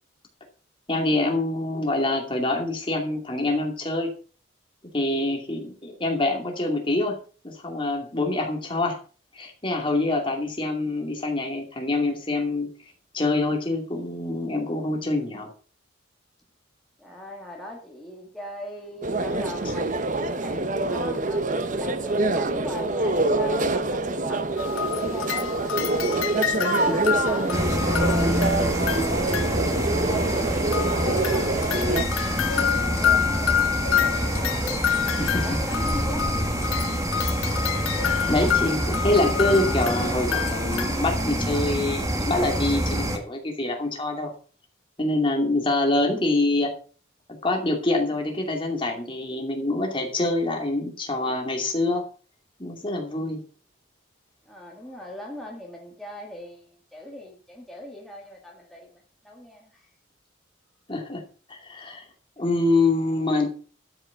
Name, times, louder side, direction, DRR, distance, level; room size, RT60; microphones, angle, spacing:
voice 1, 0.9-4.1 4.9-7.2 7.4-9.0 9.3-12.7 13.1-15.5 26.9-27.0 35.2-35.5 37.4-37.6 38.3-44.3 45.0-46.7 47.3-52.0 52.6-53.4 60.9-61.2 61.5-62.0 62.4-63.5, left 2 dB, 25° left, 2.5 m, -25 dB
voice 2, 17.0-19.9 20.4-25.9 26.3-29.2 30.1-34.6 35.0-36.5 54.5-59.9, left 1 dB, ahead, 2.0 m, -40 dB
sound 1, 19.0-32.0, right 2 dB, 40° right, 0.9 m, -25 dB
sound 2, 24.6-30.0 30.7-41.3, left 9 dB, 80° left, 0.4 m, -28 dB
sound 3, 27.5-43.2, right 1 dB, 15° right, 1.7 m, -26 dB
12.5 x 6.7 x 5.7 m
head